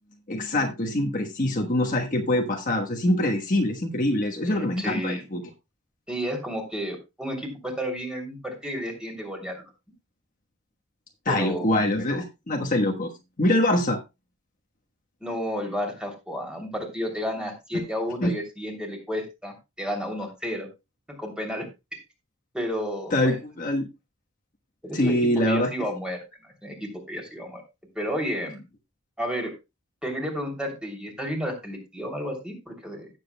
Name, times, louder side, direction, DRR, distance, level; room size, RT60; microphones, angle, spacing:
voice 1, 0.3-5.4 11.2-13.1 13.4-14.0 17.7-17.8 18.2-18.3 23.1-23.9 24.9-25.7, left 1 dB, 40° left, 1 dB, 1.3 m, -24 dB
voice 2, 4.4-5.2 6.1-9.7 11.3-11.7 15.2-20.7 21.1-21.7 21.9-22.0 22.5-23.4 24.8-27.6 27.9-28.6 29.2-29.5 30.0-33.1, equal, 5° right, 2 dB, 2.9 m, -32 dB
17.0 x 7.5 x 2.2 m, 0.24 s
head